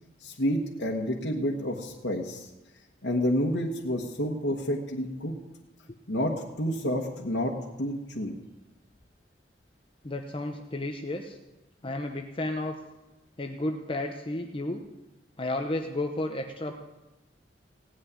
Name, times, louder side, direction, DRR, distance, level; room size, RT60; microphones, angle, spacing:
voice 1, 0.2-2.5 3.0-5.3 6.1-7.5 7.8-8.3, equal, 85° left, -2 dB, 1.4 m, -29 dB
voice 2, 10.0-11.4 11.8-12.8 13.4-14.8 15.4-16.7, left 1 dB, 30° left, 4 dB, 0.9 m, -32 dB
17.0 x 6.4 x 9.6 m, 1.0 s
head